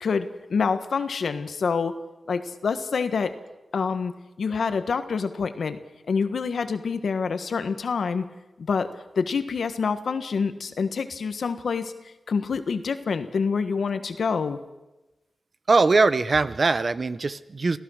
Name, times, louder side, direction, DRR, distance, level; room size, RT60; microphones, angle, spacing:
voice 1, 0.0-1.9 2.3-3.3 3.7-4.1 4.4-5.8 6.1-8.2 8.6-11.9 12.3-14.6, left 5 dB, 80° left, 10 dB, 1.4 m, -26 dB
voice 2, 15.7-17.8, right 3 dB, 50° right, 14 dB, 0.9 m, -21 dB
26.5 x 16.0 x 6.5 m, 1.0 s
wide cardioid pair, 80°, 0 cm